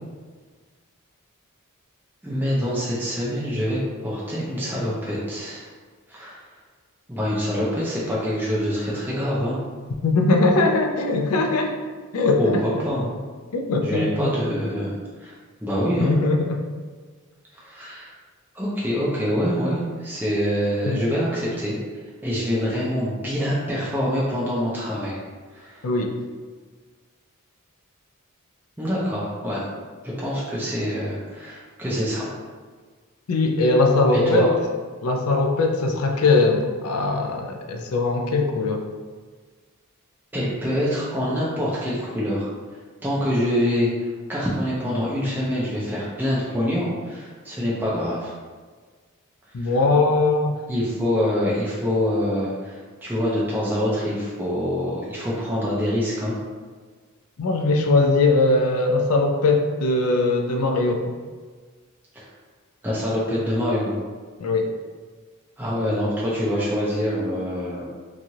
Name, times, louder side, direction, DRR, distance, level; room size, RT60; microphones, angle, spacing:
voice 1, 2.2-5.7 6.1-6.4 7.1-9.6 12.4-13.2 13.8-15.3 15.6-16.2 17.6-18.1 18.5-21.8 22.2-25.2 25.5-25.8 28.8-29.6 30.0-32.2 34.1-34.5 40.3-42.5 43.0-48.3 49.6-49.7 50.7-56.4 62.1-62.2 62.8-64.0 65.6-67.9, equal, 10° right, -7 dB, 0.4 m, -25 dB
voice 2, 10.0-11.7 12.1-12.6 13.5-14.3 16.0-16.6 20.9-21.0 25.8-26.1 33.3-34.5 35.0-38.8 49.5-50.6 57.4-61.1 64.4-64.7, left 2 dB, 80° left, 3 dB, 0.4 m, -20 dB
3.0 x 2.4 x 2.7 m, 1.5 s
head